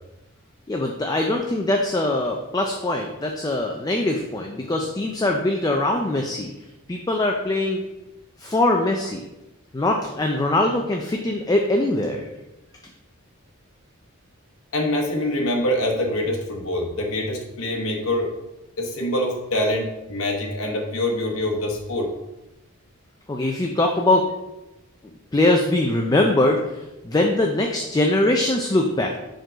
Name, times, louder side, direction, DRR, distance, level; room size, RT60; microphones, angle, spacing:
voice 1, 0.7-6.5 6.9-7.8 8.4-9.2 9.7-12.3 23.3-24.3 25.3-26.6 27.0-29.2, left 2 dB, 15° left, 2 dB, 0.4 m, -22 dB
voice 2, 14.7-18.3 18.8-22.1, left 1 dB, 80° left, 1 dB, 1.0 m, -25 dB
5.1 x 3.8 x 5.0 m, 0.98 s
head